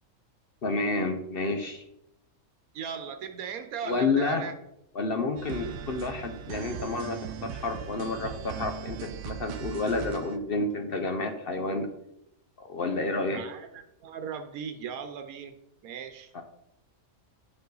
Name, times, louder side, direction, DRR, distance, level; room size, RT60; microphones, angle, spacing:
voice 1, 0.6-1.8 3.8-4.4 4.9-11.9 12.6-13.4 16.3-16.4, left 3 dB, 50° left, 6 dB, 0.9 m, -30 dB
voice 2, 2.7-4.5 13.3-15.6 15.8-16.3, right 7 dB, 90° right, 7 dB, 1.2 m, -37 dB
sound 1, 5.4-10.4, right 8 dB, 65° right, 0.9 m, -39 dB
10.5 x 5.5 x 3.9 m, 0.82 s
omnidirectional pair, 1.5 m